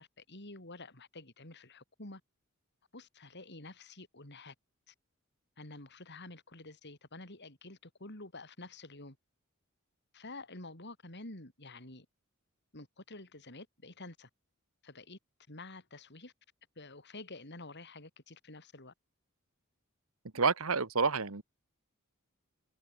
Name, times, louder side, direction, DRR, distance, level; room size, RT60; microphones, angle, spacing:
voice 1, 0.0-2.2 2.9-4.5 4.9-5.0 5.6-9.2 10.1-12.1 12.7-14.3 14.8-15.2 15.5-16.3 16.8-18.9, left 2 dB, 55° left, 5.6 m, -49 dB
voice 2, 20.3-21.4, right 4 dB, 75° right, 1.5 m, -29 dB
head